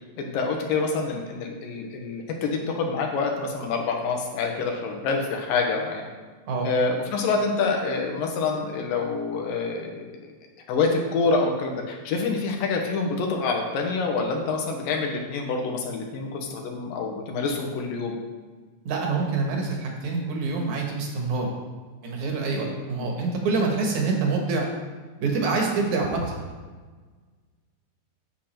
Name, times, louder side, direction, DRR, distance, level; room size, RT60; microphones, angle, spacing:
voice 1, 0.2-6.1 6.6-10.3 10.7-18.2 22.9-23.1, left 4 dB, 80° left, 2 dB, 2.9 m, -27 dB
voice 2, 18.9-21.5 22.0-24.7 25.2-26.4, right 4 dB, 60° right, 0 dB, 2.6 m, -26 dB
9.2 x 7.8 x 4.4 m, 1.4 s
omnidirectional pair, 4.0 m